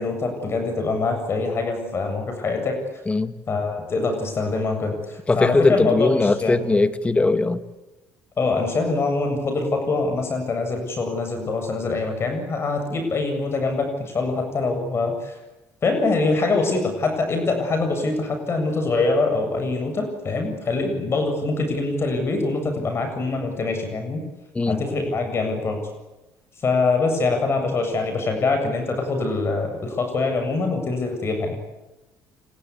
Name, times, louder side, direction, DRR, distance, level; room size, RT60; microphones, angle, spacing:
voice 1, 0.0-2.8 3.5-6.6 8.4-15.4 15.8-24.2 24.7-25.8 26.6-31.6, left 3 dB, 40° left, 5 dB, 7.7 m, -24 dB
voice 2, 5.3-7.6 24.5-24.8, left 3 dB, 20° left, 10 dB, 2.2 m, -20 dB
29.0 x 21.5 x 8.5 m, 1.0 s
supercardioid pair, 80°, 7 cm